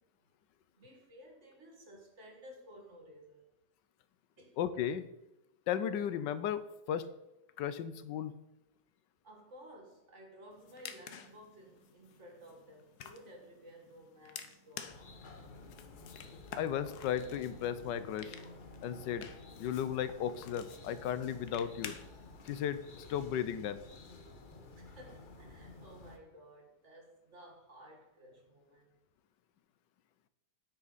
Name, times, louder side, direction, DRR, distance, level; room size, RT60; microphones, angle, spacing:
voice 1, 0.8-3.5 4.4-4.6 9.2-15.3 24.7-29.0, equal, 45° right, 2.2 m, -55 dB
voice 2, 4.6-5.1 5.7-6.6 6.9-7.1 7.6-8.3 16.6-18.3 18.8-19.3 19.6-21.9 22.4-22.8 23.1-23.8, left 9 dB, 90° left, 1.3 m, -35 dB
sound 1, 10.5-22.5, left 7 dB, 70° left, 1.4 m, -51 dB
sound 2, 14.9-26.2, left 3 dB, 40° left, 0.8 m, -52 dB
9.4 x 8.2 x 4.1 m
omnidirectional pair, 1.9 m